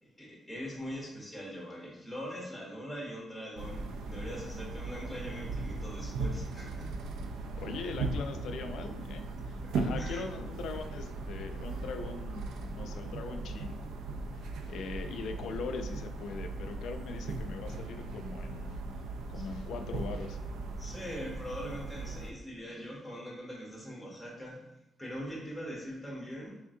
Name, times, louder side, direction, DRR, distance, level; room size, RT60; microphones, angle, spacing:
voice 1, 0.0-7.0 9.6-10.2 19.3-19.5 20.8-24.7 25.0-26.6, equal, ahead, -3 dB, 0.8 m, -42 dB
sound 1, 3.6-22.3, right 3 dB, 85° right, 0.4 m, -38 dB
voice 2, 7.5-13.8 14.3-18.8 19.3-20.4, left 4 dB, 80° left, 7 dB, 0.3 m, -41 dB
3.6 x 3.3 x 2.6 m, 0.84 s
cardioid pair, 150°, 0 cm